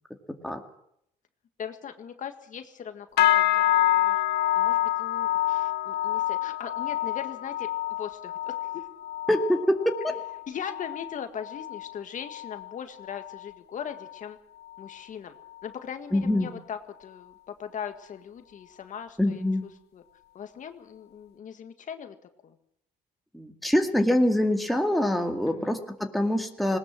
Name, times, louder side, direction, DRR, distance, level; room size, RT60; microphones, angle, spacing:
voice 1, 1.6-4.2 4.5-7.7 8.0-8.8 10.5-14.4 14.8-15.4 15.6-19.4 19.9-20.0 20.3-22.1 22.4-22.5 25.5-25.8, left 8 dB, 50° left, 7 dB, 1.8 m, -39 dB
sound 1, 3.2-12.7 13.0-13.5 13.9-14.2 14.8-14.9, left 15 dB, 75° left, 0.8 m, -27 dB
voice 2, 9.3-10.1 16.1-16.5 19.2-19.7 23.3-26.8, left 1 dB, ahead, 3 dB, 2.2 m, -25 dB
19.5 x 19.0 x 7.6 m, 0.74 s
cardioid pair, 110°, 17 cm